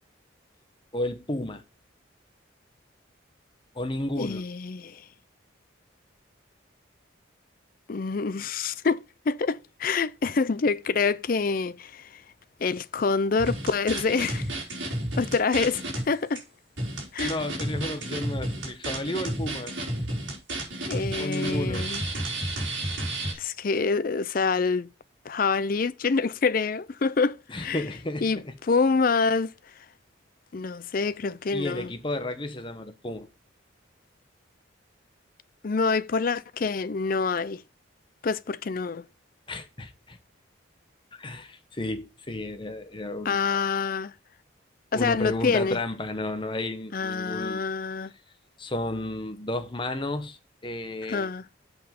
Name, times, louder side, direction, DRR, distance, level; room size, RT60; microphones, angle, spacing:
voice 1, 0.9-1.6 3.7-4.4 17.2-19.7 21.2-21.9 27.5-28.6 31.5-33.3 39.5-40.2 41.2-43.6 44.9-47.6 48.6-51.3, left 1 dB, 25° left, 1.0 m, -32 dB
voice 2, 4.2-5.0 7.9-12.2 12.6-14.5 15.2-16.4 17.1-17.4 20.9-22.0 23.4-24.9 25.3-27.8 28.2-28.4 28.7-29.5 30.5-31.9 35.6-37.6 38.2-39.0 43.2-44.1 44.9-45.8 46.9-48.1 51.1-51.4, left 4 dB, 45° left, 0.4 m, -26 dB
sound 1, 13.4-16.0 16.4-16.5 16.8-23.3, right 1 dB, 65° right, 3.9 m, -31 dB
7.9 x 5.4 x 5.2 m
head